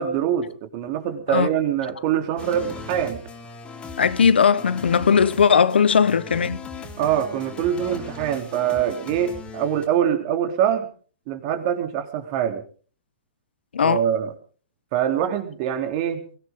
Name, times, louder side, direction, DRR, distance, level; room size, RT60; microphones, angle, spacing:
voice 1, 0.0-3.2 7.0-10.9 11.3-12.6 13.8-14.3 14.9-16.2, right 9 dB, 45° right, 3.3 m, -24 dB
sound 1, 2.4-9.9, left 4 dB, 20° left, 3.5 m, -39 dB
voice 2, 4.0-6.6 13.7-14.0, left 6 dB, 80° left, 1.0 m, -18 dB
23.0 x 16.5 x 3.8 m
hypercardioid pair, 120°, 6 cm